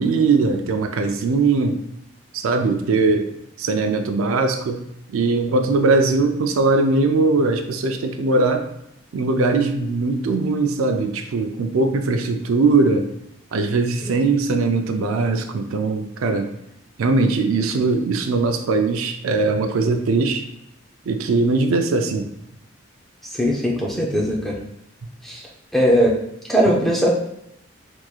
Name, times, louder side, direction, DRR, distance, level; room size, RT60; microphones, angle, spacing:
voice 1, 0.0-1.8 2.3-3.3 3.6-4.8 5.1-8.6 9.1-13.1 13.5-16.5 17.0-20.4 21.1-22.3, right 3 dB, 85° right, 6 dB, 0.4 m, -20 dB
voice 2, 23.4-24.5 25.3-25.4 25.7-26.2 26.5-27.1, equal, ahead, -3 dB, 0.5 m, -19 dB
3.5 x 3.0 x 2.3 m, 0.80 s
head